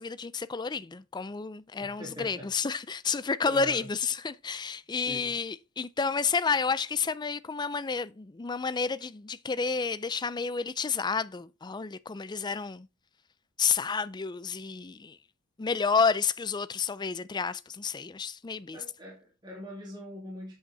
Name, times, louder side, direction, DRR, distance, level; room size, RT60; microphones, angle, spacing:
voice 1, 0.0-12.9 13.6-15.2 15.6-18.8, left 5 dB, 20° left, 0.4 m, -30 dB
voice 2, 1.8-2.5 3.4-3.9 4.9-5.3 18.7-20.5, equal, 20° right, 2.6 m, -42 dB
8.1 x 6.1 x 4.0 m
head